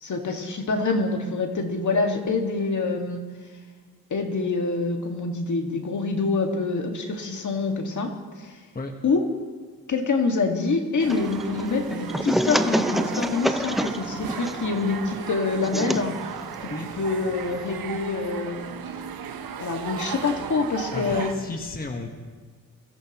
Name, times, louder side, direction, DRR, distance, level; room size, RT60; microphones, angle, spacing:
voice 1, 0.0-3.2 4.1-8.1 8.4-8.5 9.0-9.2 9.9-16.1 16.6-16.7 17.0-18.7 19.6-21.3, left 3 dB, 55° left, 2 dB, 1.9 m, -26 dB
sound 1, 11.0-21.3, right 8 dB, 80° right, 0.9 m, -36 dB
sound 2, 11.1-17.7, equal, ahead, 0.5 m, -29 dB
voice 2, 20.9-22.2, left 3 dB, 25° left, 2 dB, 1.3 m, -33 dB
22.5 x 13.5 x 3.1 m, 1.5 s
cardioid pair, 90°, 34 cm